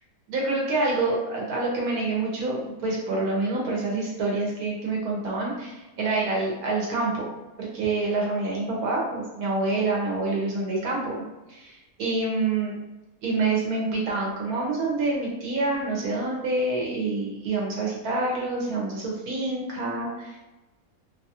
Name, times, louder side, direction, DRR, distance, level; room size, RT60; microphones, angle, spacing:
voice 1, 0.3-7.3 7.6-11.1 11.5-12.8 13.2-20.4, right 3 dB, 85° right, -3 dB, 1.2 m, -27 dB
2.8 x 2.3 x 2.7 m, 1.1 s
omnidirectional pair, 1.5 m